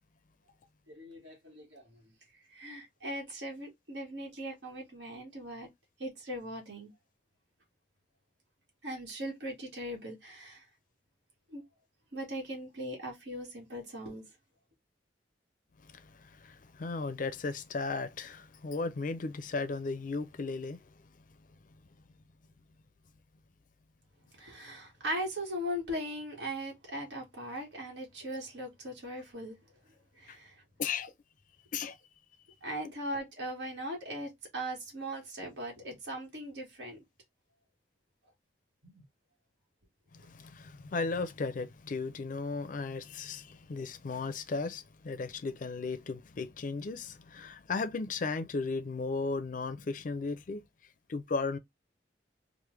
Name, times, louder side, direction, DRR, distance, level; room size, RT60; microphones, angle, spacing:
voice 1, 0.9-1.8 2.5-5.7 6.0-6.9 8.8-10.6 11.5-11.6 12.1-14.2 24.4-29.6 30.2-30.5 32.6-37.0 38.8-38.9, equal, 75° right, 1.2 m, -39 dB
voice 2, 15.8-20.8 30.3-30.4 30.8-31.1 31.7-32.0 32.8-32.9 40.1-50.6 51.1-51.6, left 4 dB, 45° left, 0.4 m, -35 dB
3.3 x 2.1 x 3.0 m
head